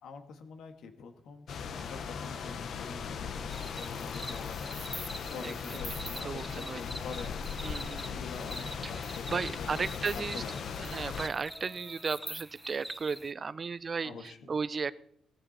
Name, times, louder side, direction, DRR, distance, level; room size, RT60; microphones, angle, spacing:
voice 1, 0.0-5.0 5.3-7.5 7.8-10.7 14.0-14.5, left 5 dB, 75° left, 6 dB, 1.9 m, -46 dB
sound 1, 1.5-11.3, left 6 dB, 60° left, 1.0 m, -38 dB
sound 2, 1.7-6.4 10.1-12.2, left 2 dB, 20° left, 2.3 m, -55 dB
sound 3, 3.5-13.3, right 1 dB, 5° right, 0.8 m, -45 dB
voice 2, 5.4-5.8 6.2-6.8 7.6-8.3 8.8-10.4 10.8-14.9, right 5 dB, 35° right, 17 dB, 0.5 m, -35 dB
18.5 x 14.0 x 4.3 m, 0.74 s
cardioid pair, 135°, 0 cm